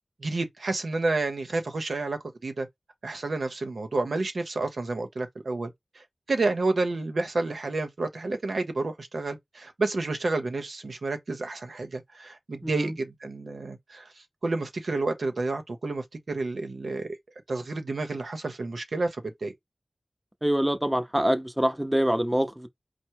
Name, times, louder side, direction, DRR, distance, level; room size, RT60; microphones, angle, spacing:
voice 1, 0.2-2.7 3.0-14.1 14.4-17.1 17.5-19.5, right 3 dB, 75° right, 0.8 m, -30 dB
voice 2, 12.6-12.9 20.4-22.7, equal, 10° right, 0.7 m, -25 dB
4.5 x 2.1 x 4.5 m
wide cardioid pair, 80°, 0 cm